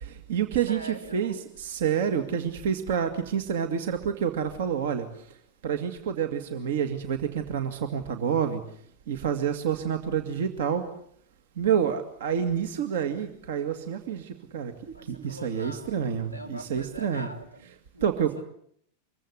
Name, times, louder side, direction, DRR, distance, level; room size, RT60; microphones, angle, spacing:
voice 1, 0.0-5.4 5.6-8.6 9.1-10.8 11.6-17.3 18.0-18.3, right 8 dB, 55° right, 8 dB, 2.3 m, -28 dB
voice 2, 0.7-1.4 14.9-18.3, right 1 dB, 85° right, 6 dB, 3.7 m, -43 dB
26.0 x 23.0 x 8.2 m, 0.66 s
figure-of-eight pair, 90°, 0 cm